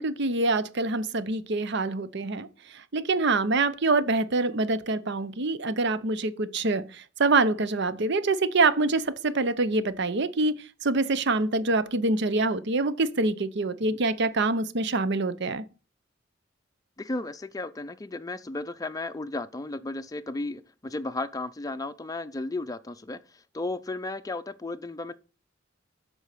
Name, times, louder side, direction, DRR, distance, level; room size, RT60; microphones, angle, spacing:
voice 1, 0.0-2.5 2.9-10.6 10.8-15.6, right 3 dB, 65° right, 0.8 m, -25 dB
voice 2, 17.0-25.1, left 2 dB, 20° left, 0.5 m, -34 dB
8.1 x 5.4 x 6.7 m
head